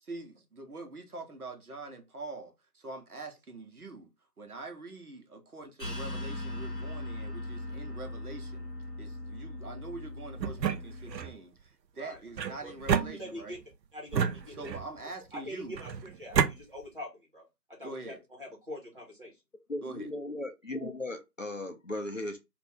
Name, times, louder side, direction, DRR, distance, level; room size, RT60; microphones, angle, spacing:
voice 1, 0.1-4.1 4.4-8.7 9.0-13.5 14.6-15.8 17.8-18.2 19.8-20.1, right 2 dB, 60° right, 0.9 m, -44 dB
sound 1, 5.8-11.2, left 1 dB, 35° left, 1.4 m, -39 dB
sound 2, 10.4-11.4 12.4-13.6 14.1-15.0 15.8-16.5, right 7 dB, 90° right, 0.6 m, -30 dB
voice 2, 13.1-13.6 13.9-14.7 15.3-19.4, left 1 dB, 30° right, 1.1 m, -44 dB
voice 3, 19.7-22.4, left 1 dB, 55° left, 0.5 m, -37 dB
2.6 x 2.5 x 3.3 m
figure-of-eight pair, 175°, 50 cm